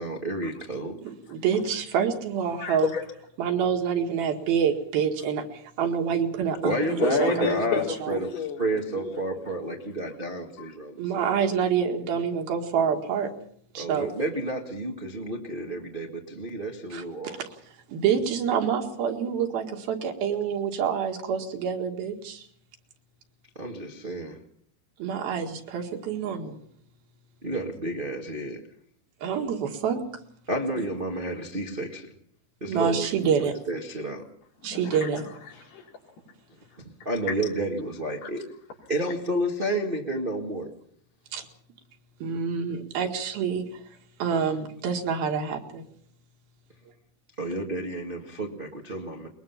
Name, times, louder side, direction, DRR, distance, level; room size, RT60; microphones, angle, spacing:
voice 1, 0.0-1.0 6.6-7.8 8.1-8.3 8.6-11.0 13.7-17.4 23.5-24.4 27.4-28.6 30.5-32.1 32.6-34.2 36.8-38.5 38.9-40.7 47.4-49.3, right 1 dB, 50° right, 2 dB, 0.6 m, -30 dB
voice 2, 1.0-2.9 3.4-7.5 8.0-8.1 11.0-13.3 13.8-14.1 16.9-17.6 17.9-22.5 25.0-26.6 29.2-30.0 32.7-33.5 34.6-35.2 41.3-41.4 42.2-43.8 44.2-45.8, right 7 dB, 75° right, 4 dB, 3.8 m, -27 dB
voice 3, 2.6-3.0 7.0-9.7 10.6-10.7 34.6-35.9 36.7-36.8 37.3-37.4 38.2-38.3, left 6 dB, 90° left, 0 dB, 6.0 m, -31 dB
22.0 x 21.0 x 5.8 m, 0.64 s
omnidirectional pair, 4.4 m